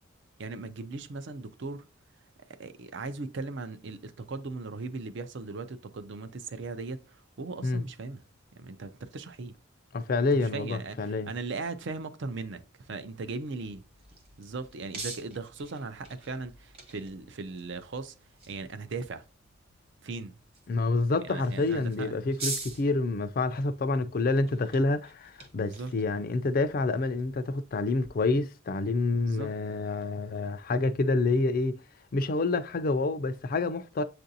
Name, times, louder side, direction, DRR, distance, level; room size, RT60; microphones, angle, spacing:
voice 1, 0.4-1.8 2.6-8.2 8.5-9.5 10.3-13.8 14.4-18.1 18.5-19.2 20.0-20.4 21.3-22.2 25.6-25.9 29.3-29.5, right 3 dB, 60° right, 0.5 m, -38 dB
voice 2, 9.9-11.3 20.7-31.8 32.1-34.0, left 3 dB, 45° left, 0.4 m, -28 dB
sound 1, 13.6-28.1, right 3 dB, 30° right, 1.0 m, -45 dB
7.7 x 2.6 x 2.7 m
head